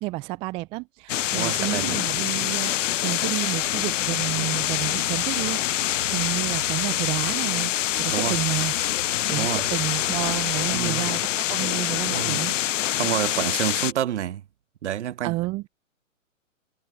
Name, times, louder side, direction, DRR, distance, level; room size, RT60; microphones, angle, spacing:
voice 1, 0.0-8.7 9.3-12.6 15.2-15.6, right 20 dB, 15° right, 0.5 m, -31 dB
sound 1, 1.1-13.9, left 13 dB, 65° left, 0.5 m, -25 dB
voice 2, 1.3-2.0 8.1-8.4 9.4-9.6 10.7-11.1 12.1-12.4 12.9-14.4 14.8-15.3, right 11 dB, 60° right, 1.2 m, -28 dB
sound 2, 3.6-11.0, left 3 dB, 90° left, 5.2 m, -43 dB
figure-of-eight pair, 120°, 41 cm